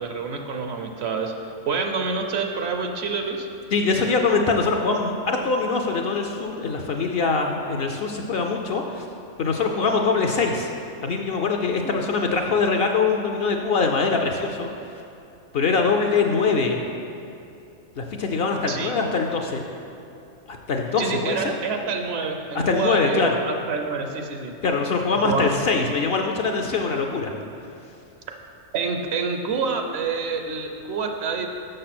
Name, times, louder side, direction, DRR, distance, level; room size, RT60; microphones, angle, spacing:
voice 1, 0.0-3.5 11.8-12.0 18.7-18.9 21.0-24.6 25.2-25.5 28.7-31.5, right 4 dB, 60° right, 4 dB, 0.8 m, -27 dB
voice 2, 3.7-9.1 9.4-10.7 11.0-15.0 15.5-16.8 18.0-19.6 20.5-21.4 22.5-23.4 24.6-27.3, left 4 dB, 60° left, 3 dB, 0.7 m, -23 dB
6.6 x 6.4 x 5.9 m, 2.7 s
omnidirectional pair, 1.3 m